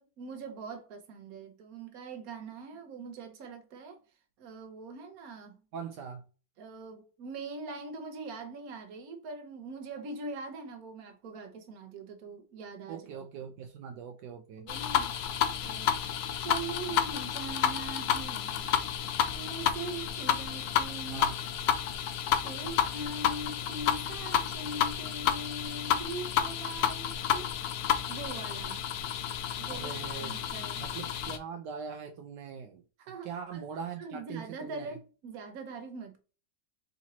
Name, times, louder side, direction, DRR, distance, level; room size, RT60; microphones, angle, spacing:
voice 1, 0.0-4.0 4.4-5.6 6.6-13.1 14.5-15.1 15.6-15.9 16.4-18.9 19.3-21.3 22.4-27.5 28.1-28.8 29.6-30.8 33.0-33.7 34.0-36.2, right 3 dB, 60° right, 1.3 m, -42 dB
voice 2, 5.7-6.2 12.9-14.6 21.1-21.4 29.7-30.3 30.8-32.8 33.2-34.9, right 7 dB, 75° right, 1.2 m, -41 dB
sound 1, 14.7-31.4, left 9 dB, 90° left, 1.3 m, -31 dB
4.3 x 4.0 x 2.8 m
omnidirectional pair, 1.9 m